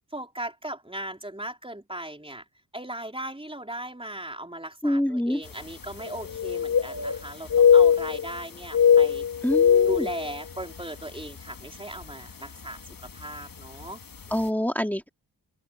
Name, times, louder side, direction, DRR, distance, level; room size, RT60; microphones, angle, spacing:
voice 1, 0.1-2.4 2.7-9.3 9.8-12.8 13.1-14.0 14.3-14.5, right 1 dB, 15° right, 3.8 m, -37 dB
voice 2, 4.8-5.4 9.4-10.1 14.3-15.1, left 1 dB, 5° left, 2.4 m, -26 dB
sound 1, 5.5-5.6 5.9-7.2 7.5-8.4 8.6-10.8 11.2-11.4 12.0-12.3 13.4-13.5 13.8-13.9, left 8 dB, 55° left, 1.5 m, -20 dB
open air
wide cardioid pair, 95°, 40 cm